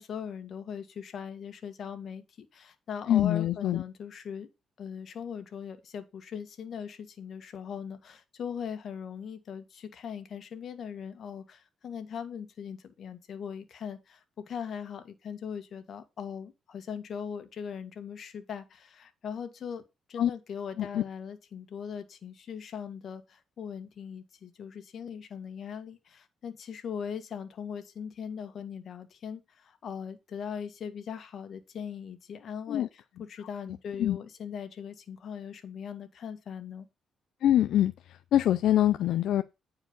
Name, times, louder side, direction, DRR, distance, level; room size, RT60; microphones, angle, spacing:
voice 1, 0.0-4.5 4.8-19.8 20.1-36.9, left 7 dB, 55° left, 1.9 m, -40 dB
voice 2, 3.1-3.8 20.2-20.3 20.8-21.0 32.7-32.9 34.0-34.2 37.4-37.9 38.3-39.4, left 12 dB, 75° left, 0.5 m, -24 dB
9.5 x 4.8 x 5.4 m
cardioid pair, 90°, 0 cm